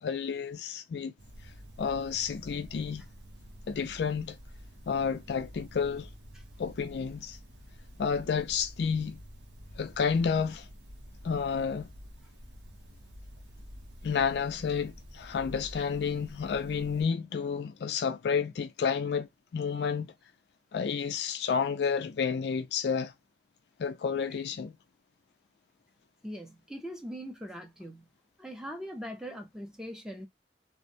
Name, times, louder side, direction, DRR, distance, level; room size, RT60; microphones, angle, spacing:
voice 1, 0.0-1.1 1.8-3.1 3.7-4.4 4.9-6.1 6.6-7.4 8.0-9.2 9.8-10.7 11.2-11.9 14.0-20.1 20.7-23.1 23.8-24.7, left 6 dB, 65° left, 0.3 m, -30 dB
sound 1, 1.2-17.0, equal, 70° right, 0.7 m, -49 dB
voice 2, 26.2-28.1 28.4-30.3, equal, 5° right, 0.5 m, -41 dB
2.5 x 2.1 x 2.6 m
head